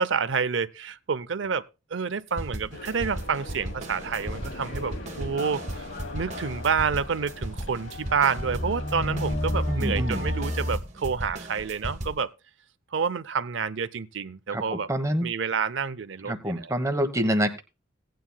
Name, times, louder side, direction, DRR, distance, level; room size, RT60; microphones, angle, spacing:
voice 1, 0.0-1.6 1.9-5.9 6.1-12.3 12.9-14.9 15.2-16.7, right 6 dB, 65° right, 0.6 m, -28 dB
sound 1, 2.4-12.2, right 1 dB, 35° right, 1.3 m, -36 dB
sound 2, 2.7-10.8, left 1 dB, 75° left, 2.8 m, -34 dB
voice 2, 9.7-10.3 14.5-15.3 16.2-17.6, equal, 15° right, 1.1 m, -27 dB
17.0 x 9.3 x 2.3 m
head